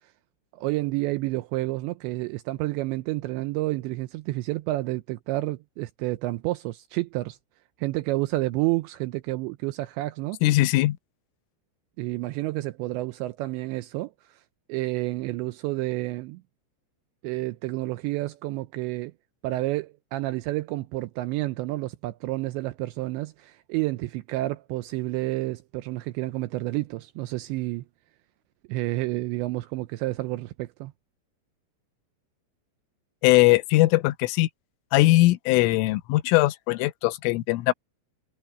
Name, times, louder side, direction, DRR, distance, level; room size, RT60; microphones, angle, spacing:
voice 1, 0.5-7.4 7.8-10.4 12.0-14.4 14.7-16.4 17.2-19.1 19.4-27.8 28.7-30.9, right 19 dB, 85° right, 2.6 m, -30 dB
voice 2, 10.4-11.0 33.2-34.5 34.9-37.7, left 19 dB, 85° left, 3.4 m, -20 dB
omnidirectional pair, 5.7 m